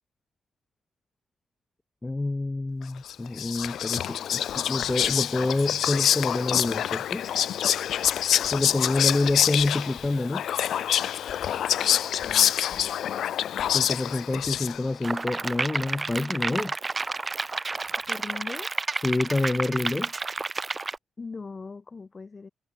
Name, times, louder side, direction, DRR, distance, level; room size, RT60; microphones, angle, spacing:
voice 1, 2.0-7.3 8.5-10.4 13.7-16.7 19.0-20.1, left 2 dB, 25° left, 0.5 m, -27 dB
Whispering, 3.1-15.0, left 10 dB, 70° left, 0.6 m, -26 dB
voice 2, 12.2-12.9 18.1-18.7 21.2-22.5, left 4 dB, 40° left, 1.7 m, -40 dB
sound 1, 15.0-21.0, right 3 dB, 35° right, 0.6 m, -31 dB
hypercardioid pair, 45°, 0 cm